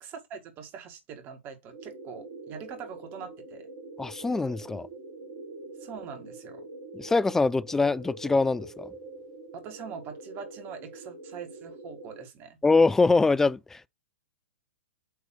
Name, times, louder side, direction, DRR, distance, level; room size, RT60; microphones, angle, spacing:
voice 1, 0.0-3.7 5.8-6.7 9.5-12.6, right 6 dB, 30° right, 1.7 m, -43 dB
sound 1, 1.7-12.3, right 2 dB, 70° right, 1.8 m, -44 dB
voice 2, 4.0-4.9 6.9-8.9 12.6-13.9, left 3 dB, 5° left, 0.3 m, -23 dB
8.3 x 3.2 x 4.8 m
figure-of-eight pair, 110°, 7 cm